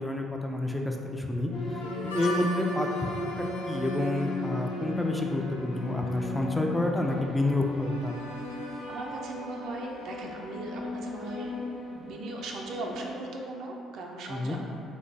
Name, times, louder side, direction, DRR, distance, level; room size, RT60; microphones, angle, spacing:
voice 1, 0.0-3.1 3.4-8.2 14.3-14.6, left 1 dB, 10° left, 1 dB, 0.4 m, -29 dB
sound 1, 1.5-13.1, left 2 dB, 50° left, 0.6 m, -37 dB
Harmonica, 1.8-11.4, left 1 dB, 90° left, 0.3 m, -43 dB
voice 2, 2.1-2.5 8.9-11.5 11.9-14.6, right 2 dB, 60° right, 0 dB, 0.4 m, -38 dB
3.1 x 2.1 x 3.8 m, 2.5 s
hypercardioid pair, 50°, 0 cm